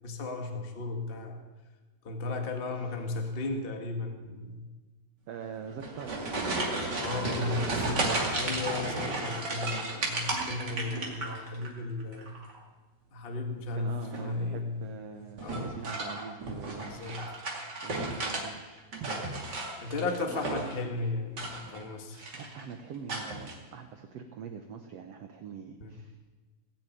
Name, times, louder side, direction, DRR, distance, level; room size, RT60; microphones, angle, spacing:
voice 1, 0.0-1.4 2.0-4.7 6.9-12.4 13.1-14.9 15.4-15.8 16.9-17.2 19.8-22.2 25.8-26.0, left 3 dB, 90° left, 4 dB, 0.5 m, -35 dB
voice 2, 5.3-6.1 7.2-8.0 13.8-17.0 17.8-19.7 20.3-20.7 22.3-26.2, right 6 dB, 80° right, 6 dB, 1.4 m, -43 dB
sound 1, 5.7-11.7 12.0-12.6 14.0-14.4 15.4-18.5 18.8-20.8 21.3-21.9 22.1-22.6 23.1-23.5, right 2 dB, 35° right, 2.4 m, -34 dB
18.5 x 7.6 x 9.2 m, 1.3 s
omnidirectional pair, 4.2 m